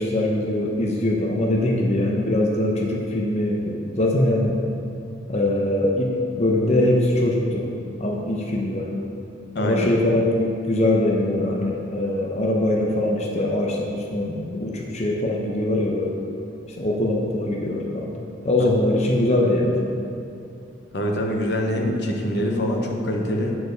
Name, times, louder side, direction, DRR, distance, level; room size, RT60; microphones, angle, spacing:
voice 1, 0.0-4.6 5.3-7.7 8.0-8.9 9.6-16.1 16.8-18.1 18.4-19.8, left 1 dB, 40° left, -1 dB, 0.8 m, -22 dB
voice 2, 9.5-9.9 18.6-18.7 20.9-23.6, equal, 65° left, 1 dB, 1.0 m, -24 dB
8.4 x 4.7 x 6.5 m, 2.5 s
head